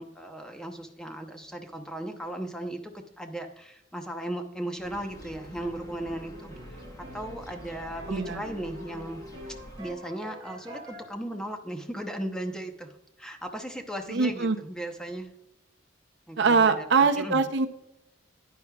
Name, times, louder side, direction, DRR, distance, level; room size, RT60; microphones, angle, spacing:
voice 1, 0.0-6.8 7.1-9.2 9.8-15.3 16.3-17.4, right 1 dB, 5° left, 5 dB, 0.8 m, -37 dB
sound 1, 4.8-9.9, equal, 20° left, 1.2 m, -47 dB
sound 2, 5.1-11.1, equal, 25° right, 3.6 m, -46 dB
voice 2, 8.1-8.4 14.1-14.6 16.4-17.7, right 4 dB, 65° right, 7 dB, 0.7 m, -23 dB
10.5 x 9.3 x 2.3 m, 0.84 s
head